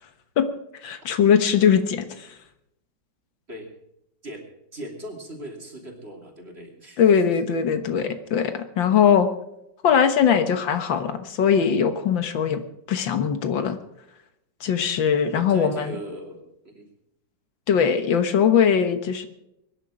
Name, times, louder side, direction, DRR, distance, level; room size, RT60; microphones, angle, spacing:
voice 1, 0.8-2.3 7.0-9.3 9.8-12.6 12.9-13.8 14.6-15.9 17.7-19.3, left 7 dB, 85° left, 9 dB, 2.0 m, -20 dB
voice 2, 4.7-7.0 7.5-7.6 15.3-16.9, equal, 35° right, 1 dB, 3.1 m, -39 dB
23.0 x 10.5 x 5.0 m, 0.83 s
omnidirectional pair, 2.0 m